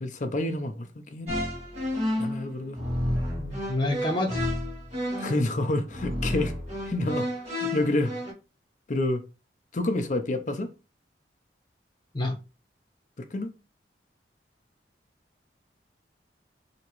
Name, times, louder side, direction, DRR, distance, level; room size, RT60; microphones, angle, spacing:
voice 1, 0.0-1.4 2.2-2.8 5.2-6.5 6.8-8.2 8.9-9.2 9.7-10.7 13.2-13.5, left 2 dB, 45° left, 0.5 m, -28 dB
sound 1, 1.3-8.3, left 1 dB, 35° right, 1.8 m, -31 dB
voice 2, 3.4-4.4 12.1-12.3, left 1 dB, 25° left, 0.9 m, -28 dB
3.5 x 2.9 x 3.0 m
head